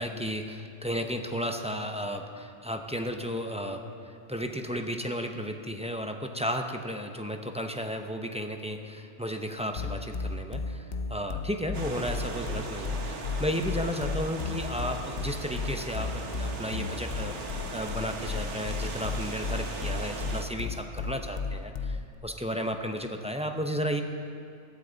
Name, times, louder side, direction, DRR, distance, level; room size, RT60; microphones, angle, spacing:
voice 1, 0.0-17.5 17.7-24.0, equal, 5° right, 4 dB, 0.6 m, -33 dB
sound 1, 9.8-22.1, left 4 dB, 75° left, 1.1 m, -34 dB
sound 2, 11.7-20.4, right 3 dB, 85° right, 1.5 m, -39 dB
19.5 x 13.0 x 4.0 m, 2.7 s
omnidirectional pair, 1.2 m